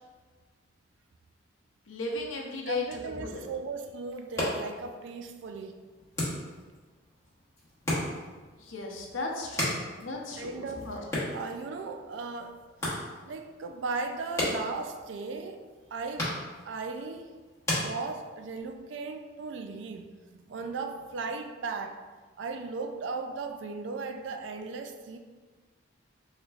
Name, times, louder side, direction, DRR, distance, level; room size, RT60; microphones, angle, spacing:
voice 1, 1.9-3.4 8.6-10.5 10.9-11.0, left 3 dB, 85° left, 0 dB, 0.6 m, -35 dB
voice 2, 2.7-5.7 10.4-10.9 11.3-12.5 13.2-15.6 15.9-16.3 16.6-17.3 17.7-20.1 20.5-22.0 22.4-25.2, right 4 dB, 70° right, 6 dB, 0.3 m, -36 dB
sound 1, 4.1-18.6, left 1 dB, 15° left, 1.0 m, -37 dB
3.9 x 3.2 x 2.4 m, 1.4 s
head